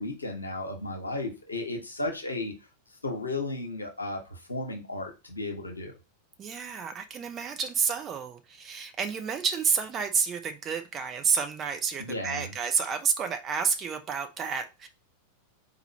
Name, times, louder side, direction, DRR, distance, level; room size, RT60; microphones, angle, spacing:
voice 1, 0.0-2.5 3.0-5.9 12.0-12.5, left 2 dB, 80° left, 1.1 m, -34 dB
voice 2, 6.4-14.9, right 6 dB, 25° right, 0.8 m, -30 dB
4.1 x 3.0 x 4.2 m
figure-of-eight pair, 90°, 0 cm